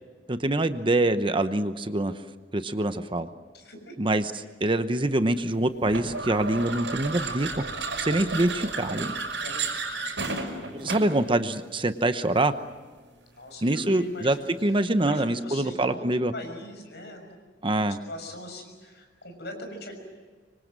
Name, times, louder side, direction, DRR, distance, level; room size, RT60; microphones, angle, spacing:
voice 1, 0.3-2.1 2.5-3.3 4.0-4.3 4.6-7.6 8.0-9.1 10.7-12.5 13.6-14.4 14.6-16.3 17.6-18.0, right 1 dB, 30° right, 10 dB, 0.9 m, -25 dB
voice 2, 3.5-3.9 9.4-9.6 13.3-14.5 15.0-16.0 16.3-17.4 17.8-19.9, left 1 dB, 65° left, 4 dB, 6.3 m, -41 dB
sound 1, 5.9-11.2, right 4 dB, 85° right, 5.6 m, -32 dB
25.5 x 25.0 x 7.6 m, 1.4 s
head